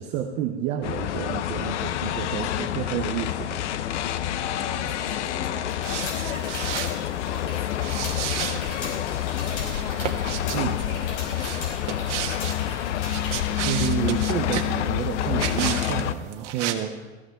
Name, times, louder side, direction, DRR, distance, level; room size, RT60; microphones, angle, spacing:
voice 1, 0.0-3.6 10.5-10.8 13.6-17.1, right 10 dB, 20° right, 4 dB, 0.5 m, -30 dB
sound 1, 0.8-16.1, left 11 dB, 90° left, 0.8 m, -28 dB
voice 2, 4.5-12.9 16.5-17.0, left 1 dB, 20° left, -1 dB, 2.7 m, -43 dB
sound 2, 5.7-13.5, left 3 dB, 55° left, 5.0 m, -39 dB
sound 3, 5.8-7.1 7.8-8.9 9.7-10.6 11.4-12.6 13.0-14.7 15.4-16.0 16.3-16.7, right 10 dB, 85° right, 1.5 m, -32 dB
15.5 x 15.0 x 3.5 m, 1.2 s
supercardioid pair, 165°, 34 cm